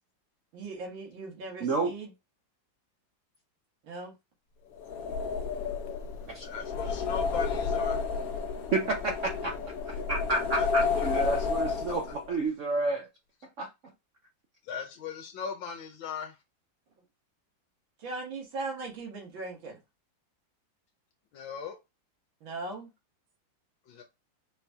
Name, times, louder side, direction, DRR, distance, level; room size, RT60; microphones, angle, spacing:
voice 1, 0.5-2.1 3.8-4.1 18.0-19.8 22.4-22.9, right 3 dB, 90° right, 2.3 m, -39 dB
voice 2, 1.6-1.9 6.3-6.5 8.7-9.5 9.9-13.1 13.6-13.7, right 3 dB, 65° right, 0.7 m, -30 dB
sound 1, 4.8-12.4, left 5 dB, 65° left, 1.0 m, -31 dB
voice 3, 6.4-8.0 10.6-10.9 14.6-16.4 21.3-21.8 23.9-24.0, left 6 dB, 90° left, 1.6 m, -39 dB
4.7 x 2.8 x 3.4 m
omnidirectional pair, 2.1 m